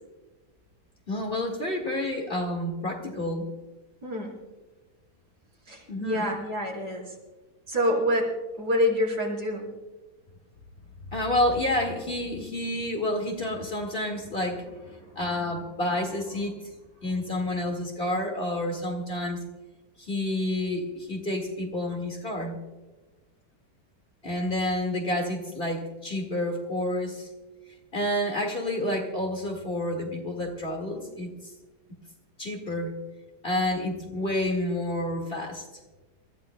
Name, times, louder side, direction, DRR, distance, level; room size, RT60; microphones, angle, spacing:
voice 1, 1.1-3.5 5.9-6.2 11.1-16.6 17.0-19.4 20.0-22.6 24.2-27.3 27.9-31.3 32.4-32.9 33.4-35.6, left 1 dB, 35° left, 1 dB, 2.0 m, -29 dB
voice 2, 4.0-4.3 5.7-7.1 7.7-9.7, left 1 dB, 70° right, -3 dB, 4.6 m, -27 dB
28.0 x 14.5 x 2.2 m, 1.2 s
omnidirectional pair, 1.8 m